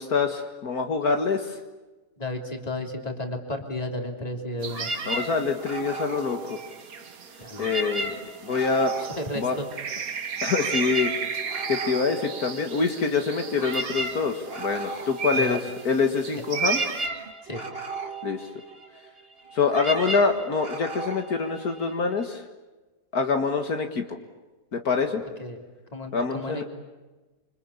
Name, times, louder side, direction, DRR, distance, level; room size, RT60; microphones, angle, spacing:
voice 1, 0.0-1.6 5.1-6.6 7.6-8.2 8.4-8.9 9.4-9.6 10.4-11.1 11.7-15.6 15.9-16.8 18.2-18.5 19.5-22.4 23.1-24.2 24.7-25.2 26.1-26.6, left 4 dB, 70° left, 5 dB, 2.2 m, -25 dB
voice 2, 2.2-4.9 7.4-7.7 9.0-9.7 15.3-15.6 17.4-17.6 25.4-25.6 25.9-26.6, left 1 dB, 25° left, 3 dB, 3.4 m, -33 dB
sound 1, 4.6-17.1, right 6 dB, 65° right, 1.7 m, -35 dB
sound 2, 4.7-7.1 7.5-10.0 10.3-22.2, right 2 dB, 40° right, 2.1 m, -35 dB
27.0 x 25.5 x 8.6 m, 1.2 s
omnidirectional pair, 1.7 m